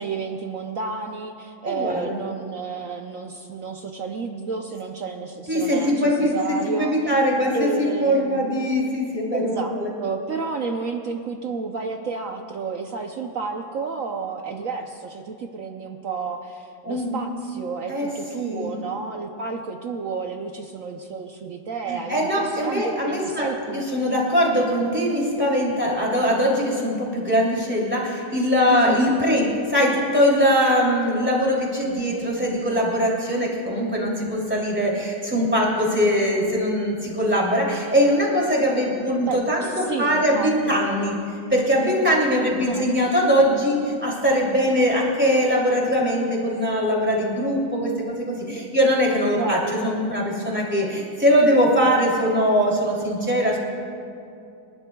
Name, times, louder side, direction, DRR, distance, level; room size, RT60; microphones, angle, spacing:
voice 1, 0.0-7.0 7.5-8.6 9.3-23.9 28.6-29.2 39.2-41.1 42.7-42.9 49.4-50.0, right 5 dB, 75° right, 4 dB, 0.7 m, -31 dB
voice 2, 1.6-2.2 5.5-9.9 16.8-17.2 17.9-18.1 18.4-18.7 21.9-41.1 41.5-53.6, equal, 5° right, -4 dB, 2.6 m, -21 dB
28.5 x 12.0 x 2.3 m, 2.5 s
omnidirectional pair, 2.2 m